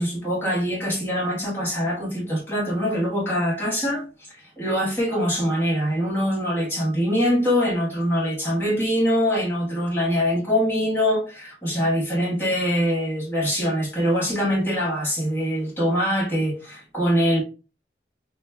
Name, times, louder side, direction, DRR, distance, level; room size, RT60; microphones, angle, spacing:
voice 1, 0.0-4.0 4.6-17.4, equal, 15° left, 1.3 m, -23 dB
6.0 x 2.2 x 2.3 m
head